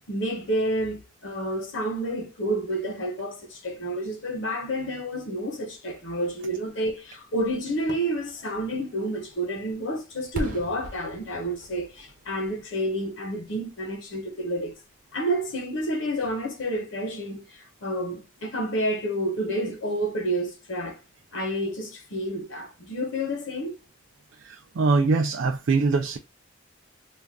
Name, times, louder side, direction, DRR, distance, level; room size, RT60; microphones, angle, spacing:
voice 1, 0.1-14.7 15.1-21.0 21.3-23.8, right 1 dB, 65° left, 0.9 m, -29 dB
Fireworks, 7.8-13.6 14.0-14.1, right 1 dB, 40° right, 0.8 m, -41 dB
voice 2, 24.4-26.2, right 4 dB, 65° right, 0.4 m, -23 dB
2.4 x 2.2 x 3.4 m
head